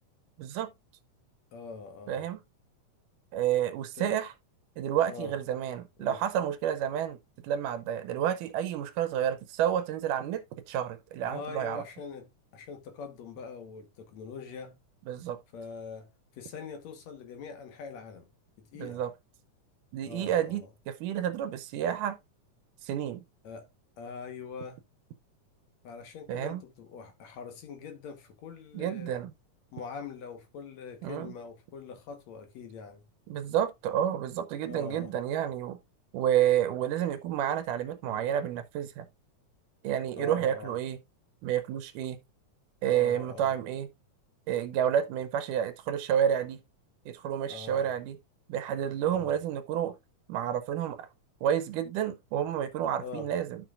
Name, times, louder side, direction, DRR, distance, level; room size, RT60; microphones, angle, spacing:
voice 1, 0.4-0.7 2.1-2.4 3.3-4.3 4.8-7.2 7.4-11.8 15.1-15.4 18.8-19.1 19.9-22.2 22.8-23.2 26.3-26.6 28.7-29.3 31.0-31.3 33.3-35.8 36.1-39.1 39.8-41.0 41.4-42.2 42.8-43.9 44.5-46.6 47.1-48.2 48.5-49.9 50.3-51.1 51.4-53.6, right 10 dB, 85° right, 2.2 m, -30 dB
voice 2, 1.5-2.3 3.9-4.1 5.1-5.4 6.0-6.2 11.3-14.8 15.5-18.3 18.6-19.0 20.0-20.7 23.4-23.7 24.0-24.8 25.8-29.2 29.7-33.0 34.7-35.1 40.2-40.7 42.9-43.6 47.5-47.9 49.1-49.4 53.0-53.3, left 5 dB, 65° left, 2.3 m, -43 dB
11.5 x 6.1 x 2.4 m
omnidirectional pair, 3.7 m